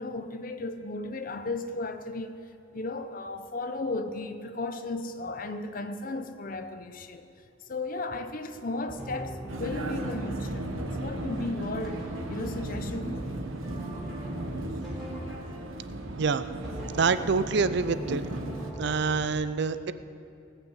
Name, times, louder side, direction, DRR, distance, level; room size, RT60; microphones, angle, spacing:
voice 1, 0.0-2.4 2.7-7.3 7.7-13.4, left 2 dB, 45° left, 8 dB, 0.7 m, -35 dB
sound 1, 8.9-15.9 16.6-19.2, equal, ahead, 3.6 m, -39 dB
Vehicle, 9.5-18.7, right 1 dB, 85° right, 1.2 m, -37 dB
voice 2, 16.9-18.2 18.8-19.9, right 4 dB, 60° right, 13 dB, 0.5 m, -26 dB
18.0 x 6.1 x 8.0 m, 2.5 s
head